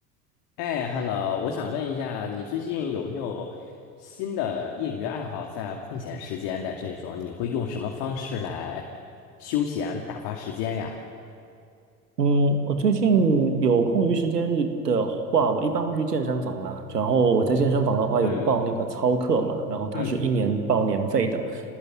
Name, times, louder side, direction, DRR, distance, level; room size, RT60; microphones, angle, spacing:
voice 1, 0.6-3.6 4.0-8.9 9.4-11.0 18.2-18.5 19.9-20.2, left 7 dB, 55° left, 2 dB, 2.5 m, -30 dB
voice 2, 12.2-21.6, right 4 dB, 80° right, 7 dB, 2.2 m, -23 dB
27.5 x 19.0 x 9.3 m, 2.4 s
figure-of-eight pair, 70°, 47 cm